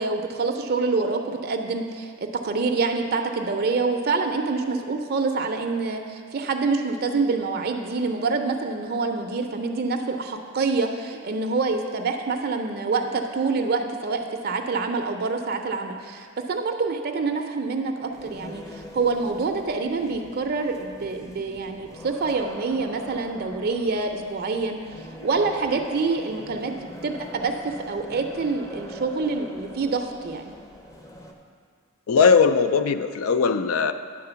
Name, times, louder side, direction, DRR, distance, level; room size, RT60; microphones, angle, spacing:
voice 1, 0.0-26.8 27.0-30.5, right 4 dB, 50° right, 5 dB, 0.5 m, -26 dB
sound 1, 18.1-31.3, left 1 dB, 15° left, 0.6 m, -42 dB
voice 2, 32.1-33.9, left 5 dB, 75° left, 10 dB, 0.4 m, -19 dB
9.8 x 3.7 x 6.8 m, 2.1 s
head